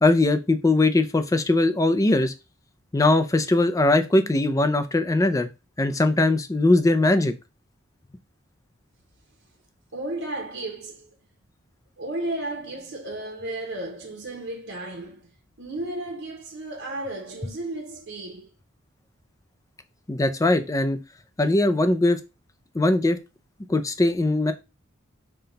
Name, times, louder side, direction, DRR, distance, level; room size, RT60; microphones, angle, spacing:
voice 1, 0.0-2.3 2.9-5.5 5.8-7.3 20.1-21.0 21.4-22.2 22.7-23.2 23.7-24.5, left 2 dB, 15° left, 0.4 m, -20 dB
voice 2, 9.9-11.1 12.0-15.3 15.6-18.5, right 2 dB, 80° right, 0.9 m, -33 dB
5.7 x 2.3 x 3.9 m
head